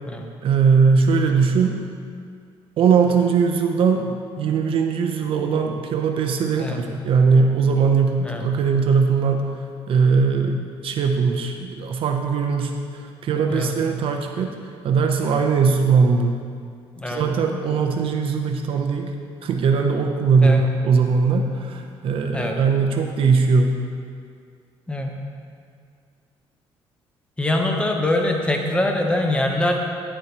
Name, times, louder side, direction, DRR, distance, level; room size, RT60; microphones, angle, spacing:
voice 1, 0.4-1.8 2.8-9.4 9.9-14.6 14.8-16.4 17.1-19.1 19.4-23.7, right 5 dB, 60° right, 3 dB, 0.6 m, -20 dB
voice 2, 27.4-29.8, left 1 dB, 10° left, 2 dB, 0.8 m, -23 dB
9.9 x 7.4 x 2.9 m, 2.2 s
cardioid pair, 130°, 11 cm